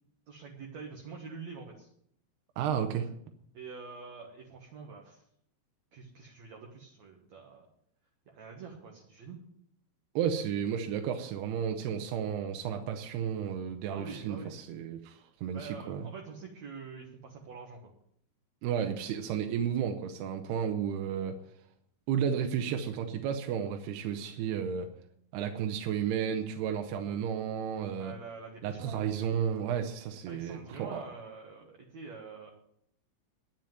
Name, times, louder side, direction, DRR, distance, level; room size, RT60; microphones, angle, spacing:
voice 1, 0.3-1.9 3.5-5.2 5.9-7.7 8.3-9.4 13.9-14.6 15.5-17.9 28.0-29.1 30.3-32.5, right 5 dB, 55° right, 1 dB, 2.2 m, -46 dB
voice 2, 2.6-3.1 10.2-16.0 18.6-21.3 22.1-24.9 25.3-28.1 28.6-31.0, right 8 dB, 85° right, 5 dB, 2.9 m, -32 dB
10.5 x 7.4 x 9.2 m, 0.69 s
omnidirectional pair, 4.7 m